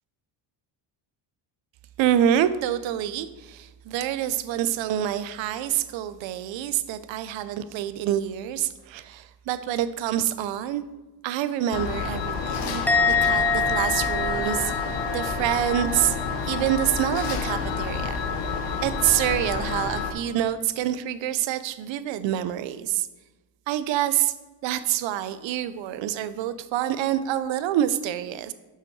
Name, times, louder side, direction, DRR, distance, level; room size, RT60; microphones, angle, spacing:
voice 1, 2.0-10.8 11.2-12.8 13.1-14.7 15.1-16.2 16.5-18.2 18.8-23.1 23.7-24.3 24.6-28.5, right 11 dB, 65° right, 14 dB, 0.6 m, -26 dB
sound 1, 11.7-20.1, left 5 dB, 55° left, 1.0 m, -29 dB
Musical instrument, 12.9-16.3 16.5-17.0, left 5 dB, 5° left, 0.3 m, -26 dB
7.0 x 5.8 x 4.6 m, 1.2 s
cardioid pair, 130°, 49 cm